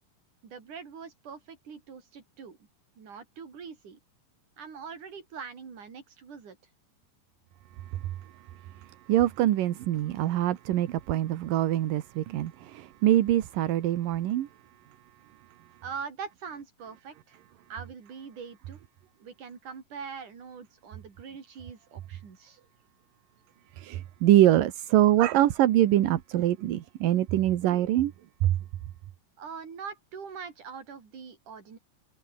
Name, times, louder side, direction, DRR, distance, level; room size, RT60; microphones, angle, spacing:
voice 1, 0.4-2.6 3.0-4.0 4.6-6.6 15.8-17.4 17.7-18.8 19.2-22.6 29.4-31.8, right 6 dB, 65° right, 5.5 m, -42 dB
voice 2, 8.8-14.5 23.8-28.1 28.4-28.6, right 13 dB, 80° right, 3.0 m, -24 dB
omnidirectional pair, 3.9 m